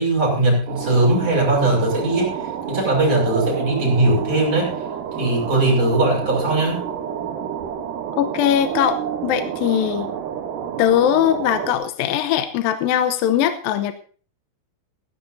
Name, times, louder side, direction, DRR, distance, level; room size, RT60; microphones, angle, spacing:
voice 1, 0.0-4.8 5.2-6.8, right 2 dB, 25° right, -2 dB, 6.8 m, -19 dB
sound 1, 0.7-11.7, right 8 dB, 70° right, 2.5 m, -29 dB
voice 2, 8.1-10.1 10.8-13.9, left 10 dB, 80° left, 9 dB, 2.5 m, -20 dB
17.0 x 14.5 x 2.7 m, 0.42 s
omnidirectional pair, 4.2 m